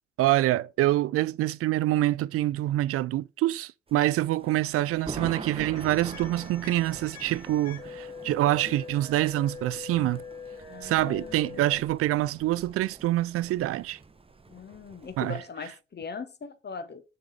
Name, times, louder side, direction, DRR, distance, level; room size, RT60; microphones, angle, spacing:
voice 1, 0.2-10.2 10.8-14.0 15.2-15.4, right 15 dB, 45° right, 0.4 m, -26 dB
Thunder, 3.9-15.4, right 4 dB, 15° right, 0.9 m, -44 dB
sound 1, 5.8-11.8, left 5 dB, 50° left, 2.1 m, -43 dB
voice 2, 10.7-11.7 14.5-17.0, left 5 dB, 30° left, 1.2 m, -40 dB
6.9 x 5.0 x 4.8 m
figure-of-eight pair, 45°, 33 cm